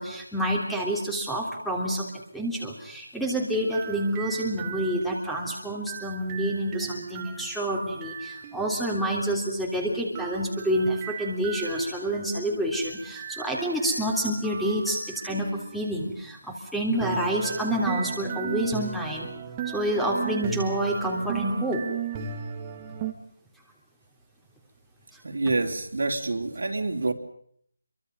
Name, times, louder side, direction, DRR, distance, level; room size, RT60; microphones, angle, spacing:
voice 1, 0.0-2.1 2.3-15.0 15.2-19.3 19.7-21.8 25.1-25.2, right 1 dB, ahead, -2 dB, 3.3 m, -28 dB
sound 1, 3.6-8.9 10.1-15.9 17.0-23.1, right 8 dB, 15° right, 2.0 m, -37 dB
voice 2, 25.2-27.1, right 3 dB, 65° right, 4 dB, 3.6 m, -27 dB
29.0 x 24.0 x 5.4 m, 0.63 s
figure-of-eight pair, 165°, 0 cm